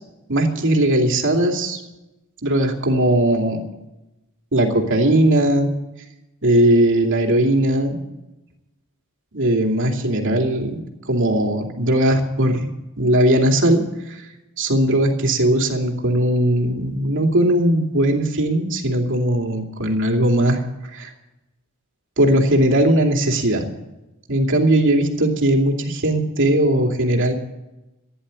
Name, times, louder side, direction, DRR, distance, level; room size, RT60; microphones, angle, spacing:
voice 1, 0.3-1.8 2.4-3.7 4.5-5.7 6.4-8.0 9.3-10.8 11.1-12.7 13.0-14.2 14.6-20.6 20.9-21.1 22.2-23.7 24.3-27.3, right 1 dB, 60° right, 2 dB, 2.7 m, -18 dB
15.5 x 11.0 x 8.3 m, 0.99 s
head